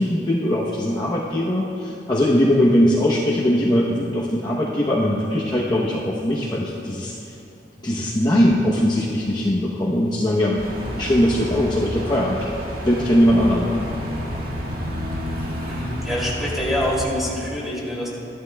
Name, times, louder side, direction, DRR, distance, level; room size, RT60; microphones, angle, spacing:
voice 1, 0.0-7.1 7.8-12.5 12.8-13.7, equal, 25° left, -5 dB, 0.8 m, -20 dB
sound 1, 10.6-17.0, equal, 55° right, 1.7 m, -30 dB
voice 2, 15.6-18.1, equal, ahead, -6 dB, 2.5 m, -25 dB
15.0 x 11.5 x 2.2 m, 2.8 s
head